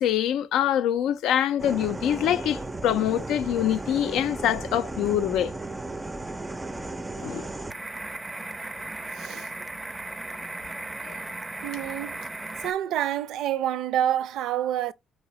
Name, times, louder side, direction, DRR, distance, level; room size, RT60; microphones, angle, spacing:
voice 1, 0.0-5.5 7.2-7.5 11.1-11.2, left 10 dB, 85° left, 0.4 m, -25 dB
sound 1, 1.6-12.7, right 2 dB, 15° right, 0.4 m, -35 dB
voice 2, 9.1-9.5 11.6-12.2 12.6-14.9, right 11 dB, 80° right, 0.4 m, -27 dB
4.9 x 2.7 x 3.0 m
cardioid pair, 105°, 0 cm